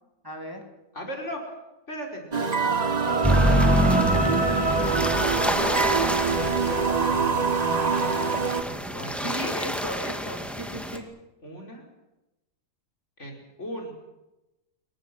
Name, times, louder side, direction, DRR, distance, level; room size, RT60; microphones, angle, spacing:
voice 1, 0.2-0.6 9.2-11.1, equal, 15° right, 1 dB, 3.3 m, -35 dB
voice 2, 0.9-1.5 1.9-2.2 4.5-5.3 5.9-9.5 11.4-11.9 13.2-13.9, equal, 55° left, 1 dB, 5.4 m, -38 dB
sound 1, 2.3-8.6, right 4 dB, 30° right, 1.3 m, -24 dB
sound 2, 3.2-11.0, equal, ahead, 2.1 m, -26 dB
26.5 x 23.5 x 6.2 m, 1.0 s
omnidirectional pair, 1.4 m